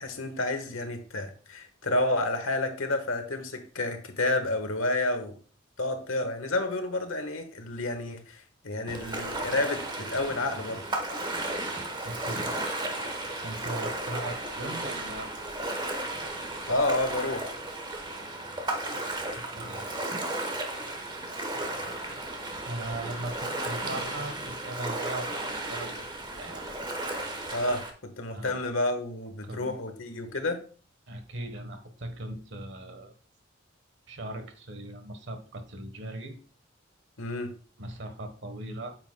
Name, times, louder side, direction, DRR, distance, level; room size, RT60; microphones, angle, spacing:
voice 1, 0.0-5.3 5.8-10.8 16.7-17.5 27.5-30.6 37.2-37.5, left 2 dB, 90° left, 7 dB, 1.3 m, -30 dB
Ocean, 8.9-27.9, right 2 dB, 20° right, 1.0 m, -34 dB
voice 2, 12.0-12.6 13.4-15.3 19.3-20.0 22.6-26.0 26.4-26.7 28.3-28.6 29.4-29.7 31.1-33.1 34.1-36.4 37.8-39.0, right 1 dB, 60° right, 7 dB, 1.2 m, -38 dB
8.9 x 7.0 x 2.2 m, 0.40 s
head